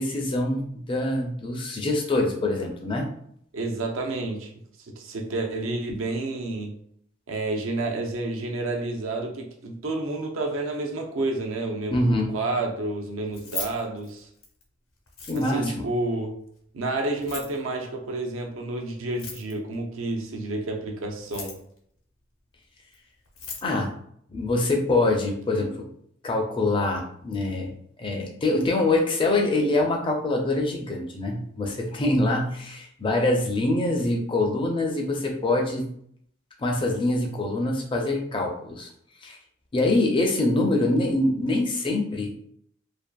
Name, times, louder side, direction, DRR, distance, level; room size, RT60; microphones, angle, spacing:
voice 1, 0.0-3.1 11.9-12.3 15.3-15.8 23.6-23.9 24.3-25.9 26.2-27.7 28.0-35.9 36.6-38.9 39.2-39.4 39.7-42.4, left 2 dB, 25° left, 1 dB, 0.4 m, -24 dB
voice 2, 3.5-4.5 5.0-6.7 7.3-12.1 12.3-14.3 15.3-16.4 16.7-21.6, right 2 dB, 80° right, 2 dB, 0.5 m, -30 dB
Keys jangling, 13.2-14.6 15.1-15.7 17.1-17.6 19.1-19.7 21.1-21.8 22.9-23.0 23.3-23.7, left 3 dB, 80° left, 0.8 m, -38 dB
2.6 x 2.4 x 2.2 m, 0.68 s
head